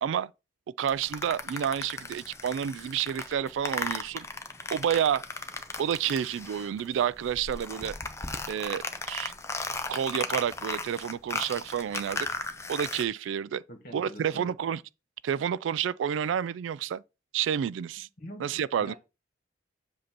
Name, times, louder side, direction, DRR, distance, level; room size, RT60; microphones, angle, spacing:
voice 1, 0.8-4.3 4.7-5.2 5.8-8.0 8.5-9.3 9.9-12.3 12.7-13.6 13.9-14.8 15.2-17.0 17.3-18.1 18.4-18.9, right 8 dB, 75° right, 0.3 m, -29 dB
sound 1, 0.9-6.9 7.2-13.0, left 3 dB, 15° left, 0.5 m, -36 dB
voice 2, 13.7-14.5 18.2-18.5 18.8-18.9, equal, 50° left, 1.7 m, -44 dB
7.7 x 2.7 x 5.9 m
head